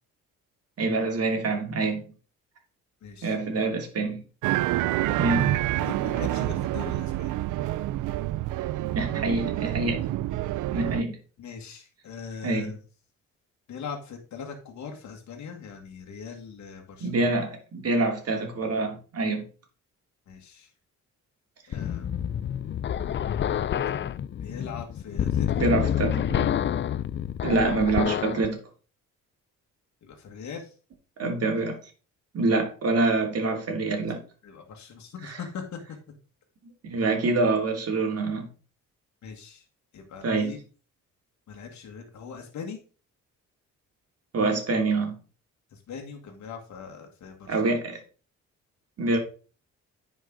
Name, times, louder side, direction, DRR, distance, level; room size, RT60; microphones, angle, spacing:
voice 1, 0.8-2.0 3.2-4.2 5.2-5.5 8.9-10.0 10.7-11.2 12.4-12.7 17.0-19.4 25.6-26.5 27.4-28.6 31.2-31.8 32.3-34.2 35.2-35.4 36.8-38.5 40.2-40.5 44.3-45.2 47.5-48.0 49.0-49.2, right 3 dB, 55° right, 2.8 m, -26 dB
voice 2, 3.0-3.4 5.7-7.3 11.4-12.8 13.7-17.3 20.3-20.7 21.7-22.2 24.4-25.7 30.0-30.7 34.4-35.8 37.0-37.1 39.2-39.6 39.9-40.6 41.5-42.8 45.7-47.7, left 6 dB, 70° left, 1.9 m, -40 dB
sound 1, 4.4-11.0, right 15 dB, 80° right, 0.5 m, -27 dB
sound 2, 21.7-28.5, left 9 dB, 40° left, 0.4 m, -28 dB
9.8 x 5.2 x 3.9 m
cardioid pair, 90°, 30 cm